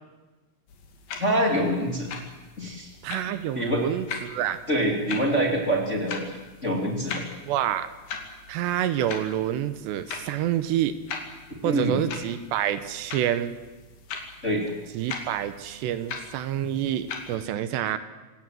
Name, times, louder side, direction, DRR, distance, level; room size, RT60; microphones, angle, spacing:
sound 1, 0.7-17.4, left 5 dB, 55° left, 3.9 m, -41 dB
voice 1, 1.2-2.1 2.6-2.9 3.5-3.8 4.7-6.3 6.6-7.2 11.6-12.0 14.4-14.6, equal, 20° left, 1 dB, 2.2 m, -25 dB
voice 2, 3.0-4.6 7.5-7.9 8.5-10.9 11.6-13.6 14.9-18.0, right 11 dB, 80° right, 12 dB, 3.0 m, -27 dB
26.5 x 17.5 x 7.7 m, 1.2 s
omnidirectional pair, 5.1 m